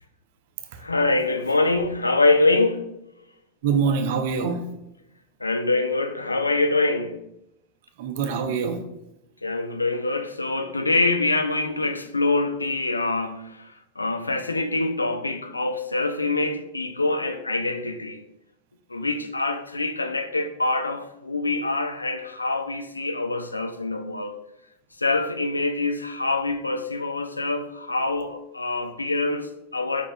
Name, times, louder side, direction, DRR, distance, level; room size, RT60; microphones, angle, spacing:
voice 1, 0.8-2.8 5.4-7.2 9.4-18.2 18.9-24.4 25.0-30.1, left 2 dB, 80° left, 0.3 m, -25 dB
voice 2, 3.6-4.7 8.0-8.8, right 5 dB, 50° right, 0.5 m, -24 dB
4.7 x 3.5 x 2.3 m
figure-of-eight pair, 90°, 0 cm